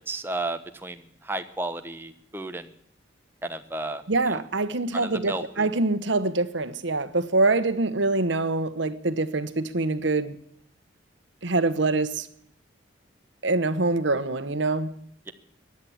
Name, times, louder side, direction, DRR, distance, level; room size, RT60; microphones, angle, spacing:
voice 1, 0.1-2.7 3.4-4.0 4.3-4.4 4.9-5.7, right 2 dB, 10° right, 1.1 m, -33 dB
voice 2, 4.1-10.3 11.4-12.3 13.4-14.9, right 2 dB, 70° right, 1.2 m, -25 dB
15.5 x 11.0 x 8.6 m
head